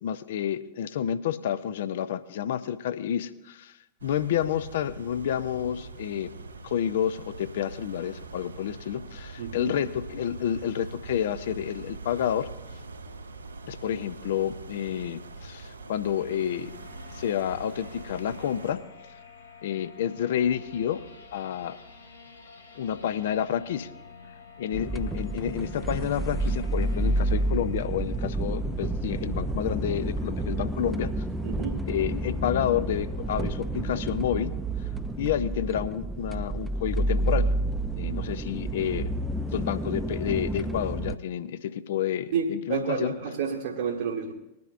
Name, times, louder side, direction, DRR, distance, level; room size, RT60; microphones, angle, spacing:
voice 1, 0.0-6.3 6.6-12.5 13.7-16.7 17.1-18.8 19.6-21.0 21.3-21.8 22.8-23.9 24.6-31.2 31.9-34.5 35.2-37.5 38.0-39.1 39.5-43.2, left 9 dB, 60° left, 14 dB, 0.6 m, -29 dB
sound 1, 4.0-18.7, right 3 dB, 75° right, 2.7 m, -43 dB
voice 2, 9.4-9.7 31.4-31.8 42.3-44.3, right 6 dB, 60° right, -2 dB, 1.5 m, -30 dB
sound 2, 16.2-30.2, left 4 dB, 80° left, 1.8 m, -49 dB
sound 3, 24.7-41.2, right 2 dB, 5° right, 0.5 m, -30 dB
20.5 x 10.5 x 2.5 m, 0.92 s
figure-of-eight pair, 90°, 0 cm